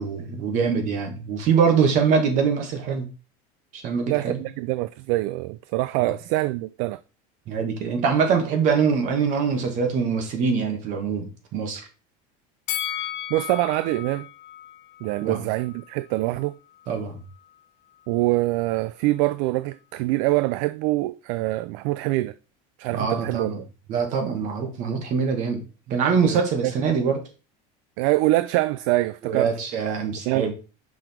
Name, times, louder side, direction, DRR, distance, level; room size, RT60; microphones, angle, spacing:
voice 1, 0.0-3.1 3.7-4.3 6.0-6.1 7.5-11.8 15.2-15.4 16.9-17.1 22.9-23.6 23.9-25.6 25.9-27.2 29.2-30.5, right 6 dB, 40° right, 1.9 m, -23 dB
voice 2, 4.1-7.0 12.9-13.0 13.3-14.3 15.0-16.5 18.1-22.4 22.8-23.7 26.3-26.7 28.0-29.5 30.3-30.5, right 18 dB, 60° right, 0.4 m, -24 dB
Bell, 12.7-15.9 16.2-16.3, left 12 dB, 70° left, 1.0 m, -34 dB
6.1 x 5.1 x 4.5 m
cardioid pair, 170°, 19 cm